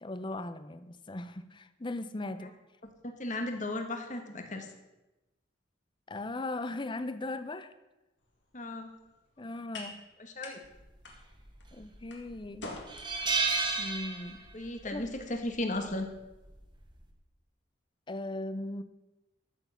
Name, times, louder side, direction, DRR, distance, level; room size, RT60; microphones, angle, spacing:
voice 1, 0.0-2.6 6.1-7.7 9.4-10.0 11.7-12.7 13.8-14.4 14.9-15.1 18.1-18.8, left 2 dB, 25° left, 12 dB, 0.6 m, -38 dB
voice 2, 3.0-4.7 8.5-8.9 10.2-10.6 14.5-16.1, left 1 dB, 40° left, 5 dB, 1.6 m, -35 dB
sound 1, 8.2-16.6, left 2 dB, 65° left, 2.1 m, -51 dB
sound 2, 11.5-12.0 12.4-12.5 12.9-14.7 15.0-15.2 16.5-16.8, right 4 dB, 25° right, 1.5 m, -31 dB
13.5 x 7.1 x 5.8 m, 1.0 s
head